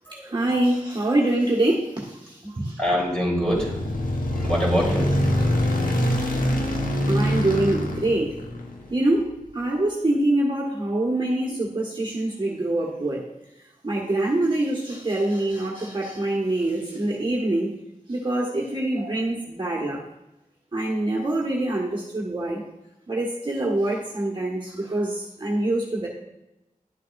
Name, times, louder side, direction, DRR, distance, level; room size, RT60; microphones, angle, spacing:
voice 1, 0.1-2.8 7.1-8.4 8.9-13.2 13.6-17.7 18.1-20.0 20.7-22.6 23.1-26.1, right 1 dB, 35° right, -4 dB, 1.5 m, -25 dB
voice 2, 2.8-3.7 4.3-5.1, equal, 5° left, -4 dB, 3.1 m, -24 dB
sound 1, 3.5-9.0, left 1 dB, 75° left, 1.2 m, -24 dB
11.5 x 7.5 x 2.5 m, 0.94 s
wide cardioid pair, 85°, 14 cm